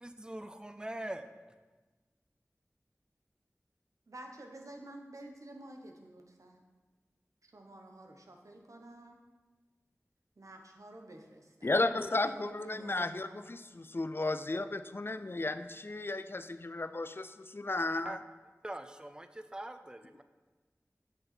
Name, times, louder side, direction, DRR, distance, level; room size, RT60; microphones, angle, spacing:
voice 1, 0.0-1.3 18.0-18.2 18.6-20.2, right 1 dB, 15° right, 9 dB, 0.5 m, -42 dB
voice 2, 4.1-6.6 7.4-9.2 10.4-11.7 12.1-13.4, right 1 dB, 80° right, 3 dB, 1.0 m, -50 dB
voice 3, 11.6-18.2, left 2 dB, 45° left, 11 dB, 0.4 m, -34 dB
7.8 x 6.5 x 4.3 m, 1.3 s
wide cardioid pair, 45°, 5 cm